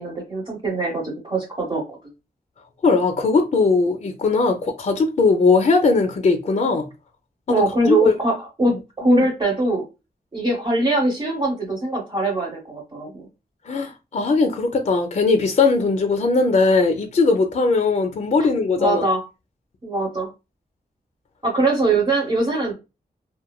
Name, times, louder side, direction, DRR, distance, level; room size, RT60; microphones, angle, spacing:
voice 1, 0.0-1.8 7.5-9.8 10.3-13.3 18.8-19.2 19.8-20.3 21.4-22.7, right 2 dB, 30° right, 0.8 m, -22 dB
voice 2, 2.8-6.9 7.5-8.2 9.0-9.2 13.7-19.0, left 3 dB, 45° left, 0.4 m, -19 dB
3.0 x 2.2 x 2.2 m
wide cardioid pair, 135°, 17 cm